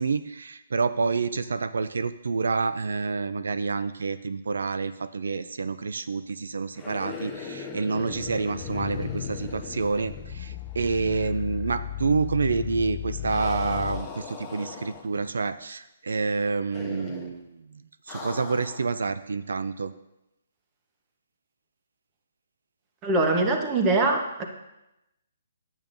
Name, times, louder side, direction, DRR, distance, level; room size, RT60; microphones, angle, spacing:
voice 1, 0.0-17.6 18.1-19.9 23.3-23.4, right 4 dB, 85° right, 13 dB, 0.4 m, -28 dB
sound 1, 6.7-10.9 11.2-11.3 13.3-15.3 16.7-17.4 18.1-18.9, left 5 dB, 5° left, 1.0 m, -40 dB
sound 2, 8.1-14.1, left 12 dB, 30° left, 0.4 m, -35 dB
voice 2, 23.0-24.4, right 2 dB, 20° right, 2 dB, 1.0 m, -23 dB
10.5 x 8.8 x 2.6 m, 0.91 s
hypercardioid pair, 160°, 0 cm